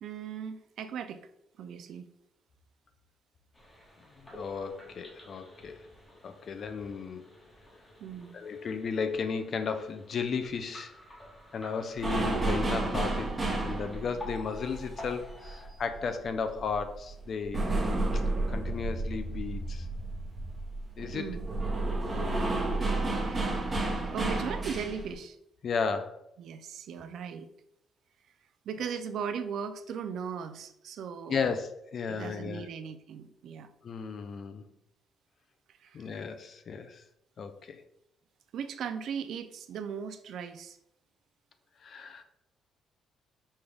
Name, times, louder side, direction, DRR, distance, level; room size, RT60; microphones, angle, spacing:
voice 1, 0.0-1.2 1.6-2.1 8.0-8.4 21.1-21.4 23.2-23.6 24.1-25.4 26.4-27.5 28.7-31.5 32.1-33.7 35.8-36.1 38.5-40.8, right 7 dB, 65° right, 9 dB, 0.3 m, -38 dB
sound 1, 3.5-15.7, left 1 dB, 15° left, 1.0 m, -50 dB
voice 2, 4.2-5.8 6.2-7.2 8.3-10.9 11.5-17.7 18.1-18.2 18.5-19.9 21.0-21.4 25.6-26.2 31.3-32.7 33.8-34.6 35.9-37.0 37.4-37.8 41.8-42.2, left 5 dB, 45° left, 8 dB, 0.4 m, -34 dB
sound 2, 12.0-16.3 16.6-25.1, right 2 dB, 20° right, 0.8 m, -31 dB
5.3 x 2.3 x 3.2 m, 0.78 s
cardioid pair, 150°, 0 cm